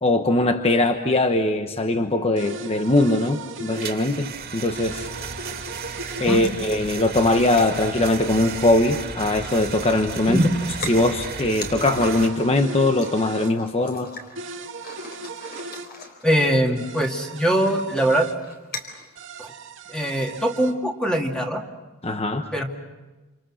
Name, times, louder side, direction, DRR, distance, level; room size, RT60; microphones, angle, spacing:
voice 1, 0.0-5.1 6.2-10.4 10.9-14.1 22.0-22.4, left 2 dB, 25° left, 6 dB, 1.0 m, -21 dB
sound 1, 2.4-4.0 4.8-6.3 7.2-8.8 9.6-11.1 12.0-13.5 14.4-15.9 16.8-18.4 19.2-20.7, right 3 dB, 60° right, 2.1 m, -38 dB
sound 2, 3.7-12.3, right 5 dB, 45° right, 2.3 m, -34 dB
sound 3, 5.1-5.9 6.3-19.2, left 2 dB, 45° left, 4.4 m, -42 dB
voice 2, 16.2-18.3 19.4-19.5 19.9-21.6 22.5-22.6, right 1 dB, 5° left, 1 dB, 2.3 m, -22 dB
28.0 x 28.0 x 6.4 m, 1.2 s
head